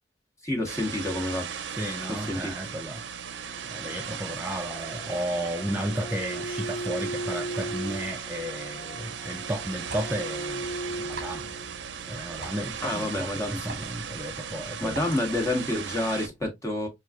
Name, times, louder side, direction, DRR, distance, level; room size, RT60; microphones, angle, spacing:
voice 1, 0.4-1.5 2.3-2.5 12.8-13.7 14.8-16.9, left 1 dB, 15° left, 1.2 m, -28 dB
sound 1, 0.7-16.3, right 7 dB, 80° right, 0.5 m, -37 dB
voice 2, 1.8-3.1 3.7-11.5 12.1-15.3, equal, 10° right, 0.3 m, -33 dB
sound 2, 3.5-15.3, right 1 dB, 45° left, 0.7 m, -40 dB
sound 3, 9.5-15.6, right 2 dB, 55° right, 1.0 m, -46 dB
6.0 x 2.4 x 2.3 m
head